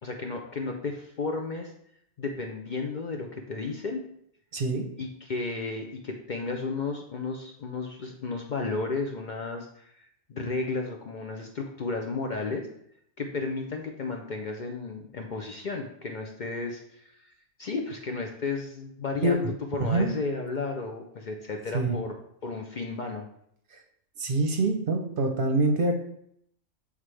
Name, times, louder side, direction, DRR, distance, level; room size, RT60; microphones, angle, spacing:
voice 1, 0.0-1.7 2.2-4.0 5.0-12.7 13.2-17.3 17.6-22.2 22.4-23.3, left 3 dB, 55° left, 3 dB, 0.5 m, -33 dB
voice 2, 4.5-4.9 19.2-19.4 19.9-20.1 21.7-22.0 24.2-25.9, right 2 dB, 50° right, 3 dB, 0.8 m, -25 dB
8.0 x 3.7 x 3.2 m, 0.72 s
omnidirectional pair, 1.3 m